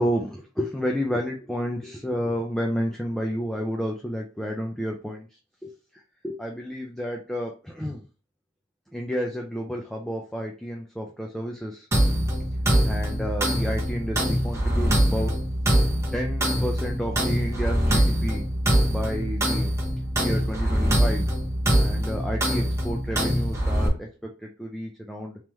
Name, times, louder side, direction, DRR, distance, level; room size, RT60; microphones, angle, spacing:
voice 1, 0.0-8.0 8.9-11.9 12.8-15.3 16.1-18.5 18.8-19.7 20.2-21.3 21.8-25.4, equal, ahead, 0 dB, 0.4 m, -31 dB
sound 1, 11.9-23.9, equal, 15° right, 0.9 m, -23 dB
3.6 x 3.1 x 3.0 m, 0.36 s
head